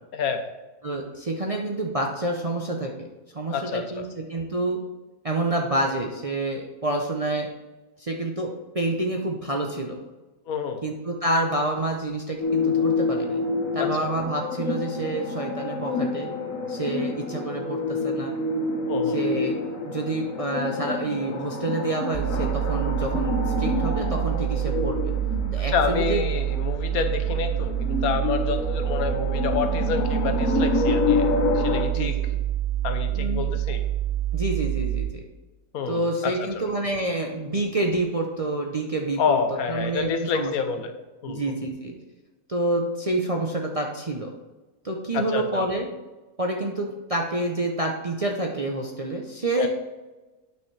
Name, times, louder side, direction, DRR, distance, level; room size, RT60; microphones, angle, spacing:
voice 1, 0.1-0.5 3.5-4.1 10.5-10.8 13.8-14.1 18.9-19.2 25.7-32.2 32.8-33.8 35.7-36.5 39.2-40.9 41.2-41.5 45.1-45.7 49.6-49.7, left 6 dB, 80° left, 7 dB, 1.3 m, -28 dB
voice 2, 0.8-3.1 3.3-4.8 5.2-7.5 8.0-10.0 10.8-13.4 13.7-16.3 16.7-18.3 19.1-19.6 19.8-25.1 25.5-26.2 32.0-32.4 33.1-33.5 34.3-35.2 35.9-39.4 39.7-40.5 41.3-41.9 42.5-44.3 44.8-45.9 46.4-49.7, right 2 dB, 35° right, 1 dB, 0.6 m, -28 dB
sound 1, 12.4-31.8, left 3 dB, 65° left, 1.4 m, -28 dB
sound 2, 22.1-35.1, right 12 dB, 60° right, 0.9 m, -27 dB
9.3 x 6.0 x 3.3 m, 1.2 s
omnidirectional pair, 1.5 m